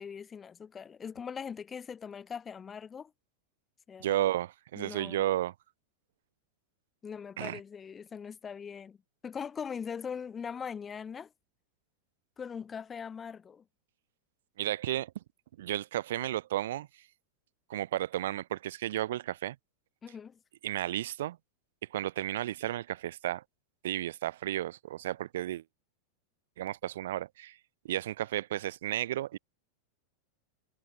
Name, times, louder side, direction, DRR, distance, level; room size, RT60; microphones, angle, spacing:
voice 1, 0.0-3.1 3.9-4.2 4.8-5.2 7.0-9.0 9.2-11.3 12.4-13.6 20.0-20.4, left 6 dB, 20° left, 0.7 m, -41 dB
voice 2, 4.0-5.5 7.4-7.6 14.6-15.1 15.6-16.9 17.7-19.6 20.6-21.4 21.9-23.4 23.8-25.6 26.6-27.6 27.8-29.4, right 13 dB, 55° right, 0.4 m, -33 dB
figure-of-eight pair, 90°, 0 cm